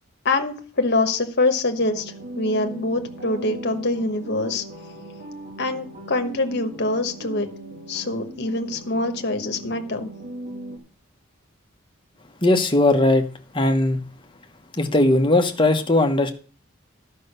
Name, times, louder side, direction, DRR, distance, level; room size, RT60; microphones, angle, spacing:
voice 1, 0.2-4.6 5.6-7.5 7.9-10.1, left 2 dB, 50° left, 7 dB, 1.2 m, -24 dB
sound 1, 1.8-10.8, right 1 dB, 40° right, 2.0 m, -38 dB
voice 2, 12.4-13.2 13.5-14.0 14.8-16.3, left 2 dB, 25° left, 5 dB, 1.0 m, -18 dB
11.5 x 5.6 x 6.7 m, 0.40 s
head